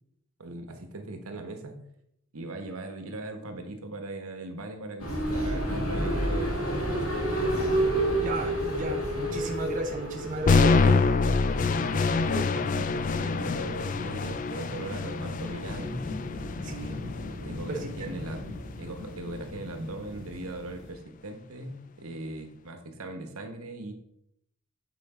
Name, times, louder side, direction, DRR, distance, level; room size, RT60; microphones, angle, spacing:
voice 1, 0.4-1.8 2.3-7.1 7.4-7.6 11.7-16.0 17.4-18.5 18.8-23.9, right 2 dB, 80° right, 6 dB, 1.1 m, -39 dB
sound 1, 5.0-11.6, right 1 dB, 75° left, 2.4 m, -29 dB
voice 2, 8.2-11.0 12.2-12.4 16.6-17.0 17.7-17.9, right 2 dB, 35° right, 1 dB, 0.7 m, -34 dB
sound 2, 10.5-18.5, left 4 dB, 35° left, 0.3 m, -26 dB
sound 3, 11.2-20.9, left 2 dB, 60° left, 2.3 m, -40 dB
8.0 x 4.9 x 4.9 m, 0.76 s
head